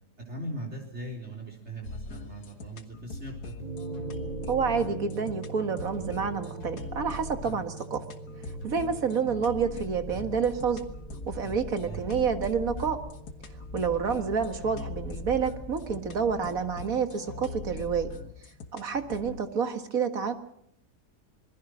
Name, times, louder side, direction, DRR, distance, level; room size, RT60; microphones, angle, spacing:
voice 1, 0.2-3.5 11.8-12.2, right 1 dB, 40° right, 2 dB, 3.9 m, -39 dB
sound 1, 1.8-19.4, left 3 dB, 70° left, 2.2 m, -42 dB
sound 2, 3.6-18.1, right 2 dB, 25° right, 3.3 m, -43 dB
voice 2, 4.5-8.0 8.6-10.8 11.3-13.0 13.7-18.1 18.7-20.3, right 6 dB, 60° right, 8 dB, 2.1 m, -28 dB
sound 3, 10.0-16.4, equal, 25° left, 2.3 m, -44 dB
26.5 x 21.5 x 6.2 m, 0.74 s
omnidirectional pair, 1.7 m